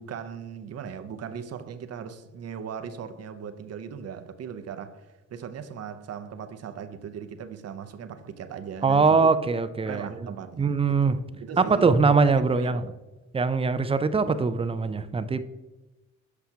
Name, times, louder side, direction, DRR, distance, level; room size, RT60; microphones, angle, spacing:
voice 1, 0.0-9.4 9.9-10.7 11.0-12.9, right 7 dB, 55° right, 0.7 m, -38 dB
voice 2, 8.8-10.3 10.6-11.2 11.6-12.8 13.3-15.4, right 4 dB, 20° right, 0.4 m, -22 dB
8.0 x 5.9 x 2.8 m
cardioid pair, 90°, 30 cm